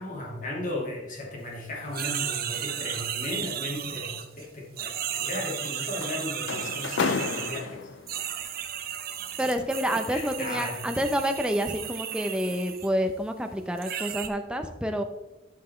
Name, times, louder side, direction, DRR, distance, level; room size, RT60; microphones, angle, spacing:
voice 1, 0.0-8.4 10.1-10.8, left 1 dB, 45° left, -2 dB, 2.3 m, -36 dB
sound 1, 1.9-4.4 4.8-7.6 8.1-12.9 13.8-14.3, right 9 dB, 55° right, 0.8 m, -34 dB
sound 2, 5.3-8.3 9.4-11.3 11.8-12.0 12.5-12.7, left 5 dB, 80° left, 0.5 m, -33 dB
voice 2, 9.4-15.0, equal, 5° right, 6 dB, 0.7 m, -28 dB
12.0 x 6.0 x 3.3 m, 0.98 s
head